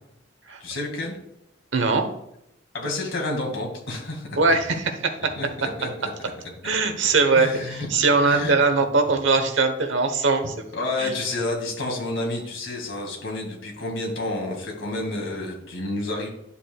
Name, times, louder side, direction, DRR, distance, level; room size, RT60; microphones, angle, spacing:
voice 1, 0.6-1.2 2.7-4.4 5.4-5.9 7.4-7.9 8.2-8.5 10.7-16.3, left 2 dB, 70° left, 0 dB, 2.2 m, -29 dB
voice 2, 1.7-2.0 4.4-5.3 6.6-10.5 11.0-11.1, right 3 dB, 70° right, 6 dB, 1.1 m, -21 dB
11.0 x 7.4 x 2.4 m, 0.79 s
head